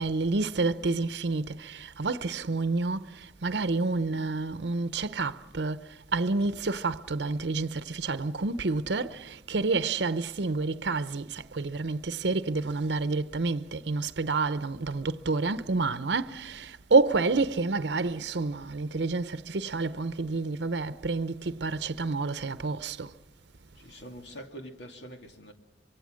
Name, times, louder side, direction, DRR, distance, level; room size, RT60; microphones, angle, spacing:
voice 1, 0.0-23.1, right 3 dB, 65° right, 0.7 m, -29 dB
voice 2, 23.8-25.5, equal, 70° left, 2.4 m, -44 dB
25.0 x 24.0 x 6.4 m
head